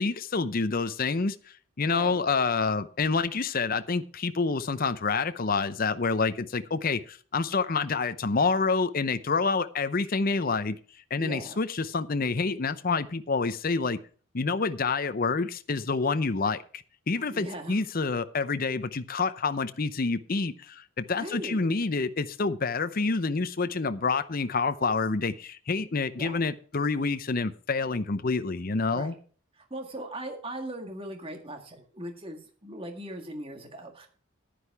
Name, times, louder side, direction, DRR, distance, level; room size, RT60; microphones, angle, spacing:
voice 1, 0.0-1.4 1.8-10.8 11.1-14.0 14.3-16.6 17.1-29.1, left 4 dB, 40° left, 0.6 m, -27 dB
voice 2, 1.8-2.2 11.2-11.6 17.3-17.8 21.1-21.7 26.2-26.4 28.9-29.2 29.6-34.1, right 1 dB, 25° right, 1.8 m, -39 dB
10.0 x 10.0 x 4.7 m
head